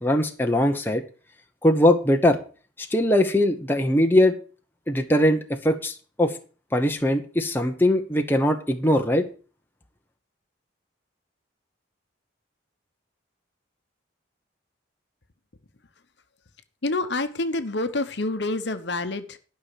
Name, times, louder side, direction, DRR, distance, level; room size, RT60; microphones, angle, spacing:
voice 1, 0.0-1.0 1.6-2.4 2.8-4.4 4.9-6.4 6.7-9.3, left 1 dB, 10° left, 4 dB, 0.9 m, -21 dB
voice 2, 16.8-19.4, left 2 dB, 60° left, 9 dB, 1.0 m, -27 dB
12.0 x 5.7 x 6.7 m, 0.39 s
head